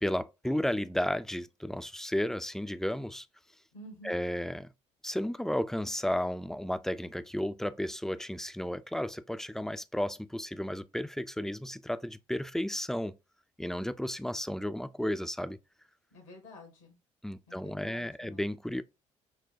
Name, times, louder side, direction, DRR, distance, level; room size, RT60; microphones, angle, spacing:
voice 1, 0.0-3.3 4.0-4.7 5.0-13.2 13.6-15.6 17.2-18.8, left 1 dB, 5° left, 0.3 m, -33 dB
voice 2, 3.7-4.2 16.1-17.0 17.5-18.5, equal, 80° left, 1.4 m, -50 dB
6.1 x 2.2 x 2.5 m
hypercardioid pair, 50°, 16 cm